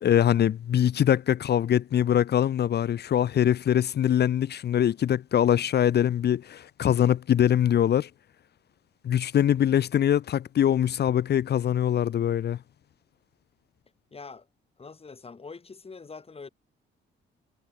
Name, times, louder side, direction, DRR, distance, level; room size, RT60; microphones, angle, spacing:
voice 1, 0.0-8.1 9.0-12.6, left 10 dB, 55° left, 0.9 m, -23 dB
voice 2, 14.1-14.5 14.8-16.5, left 4 dB, 30° left, 3.0 m, -44 dB
cardioid pair, 90°, 20 cm